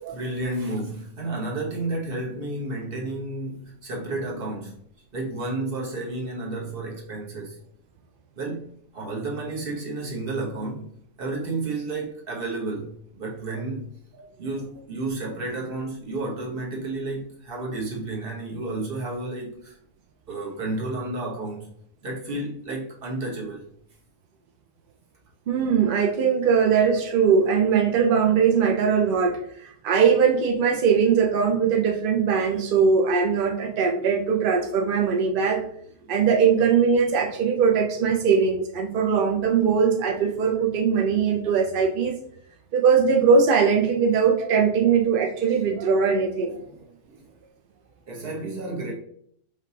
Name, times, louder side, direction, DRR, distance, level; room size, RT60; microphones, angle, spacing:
voice 1, 0.1-4.8 5.1-7.6 8.3-8.7 8.9-10.9 11.2-13.9 14.4-19.8 20.3-21.7 22.0-23.6 46.7-47.3 48.0-48.9, right 2 dB, 40° right, 1.2 m, -31 dB
voice 2, 25.5-35.6 36.1-42.2 42.7-46.6, right 6 dB, 70° right, 0.5 m, -21 dB
4.9 x 3.3 x 2.8 m
omnidirectional pair, 1.5 m